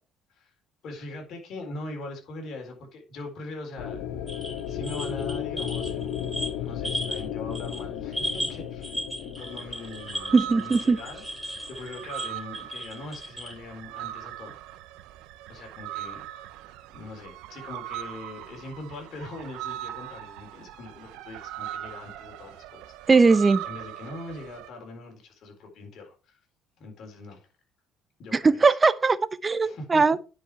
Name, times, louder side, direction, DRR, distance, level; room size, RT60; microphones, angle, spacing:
voice 1, 0.8-4.0 4.3-6.2 6.6-14.6 15.5-16.5 16.9-23.1 23.6-26.4 26.8-27.5 28.2-28.7 29.6-30.0, left 2 dB, 60° left, 4.1 m, -41 dB
sound 1, 3.8-11.9, left 9 dB, 85° left, 1.3 m, -35 dB
sound 2, 4.3-7.3 7.5-7.8 8.1-13.5, equal, ahead, 3.6 m, -35 dB
sound 3, 9.4-24.7, right 13 dB, 80° right, 0.7 m, -40 dB
voice 2, 10.3-11.0 23.1-23.6 28.3-30.2, right 4 dB, 25° right, 0.7 m, -20 dB
9.9 x 5.3 x 4.6 m
supercardioid pair, 90°, 0 cm